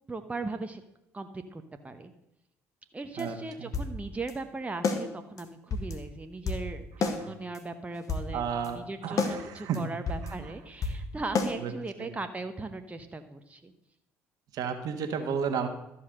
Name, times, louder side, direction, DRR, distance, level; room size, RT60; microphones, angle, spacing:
voice 1, 0.1-0.8 1.1-2.1 2.9-13.7, right 3 dB, 20° right, 7 dB, 1.0 m, -38 dB
sound 1, 3.2-3.3 3.7-3.9 4.3-4.4 4.8-5.0 5.4-5.5 5.7-6.0 6.5-6.7 7.0-7.2 7.5-7.6 7.9-8.3 8.6-8.7 9.2-9.4 9.7-9.8 10.1-10.3 10.8-11.0 11.3-11.5, left 4 dB, 50° left, 1.6 m, -29 dB
voice 2, 3.2-3.7 7.2-7.3 8.3-9.9 10.2-10.5 11.6-11.7 12.0-12.1 14.5-15.7, right 7 dB, 60° right, 7 dB, 1.4 m, -33 dB
13.0 x 5.7 x 6.5 m, 0.87 s
hypercardioid pair, 55°, 7 cm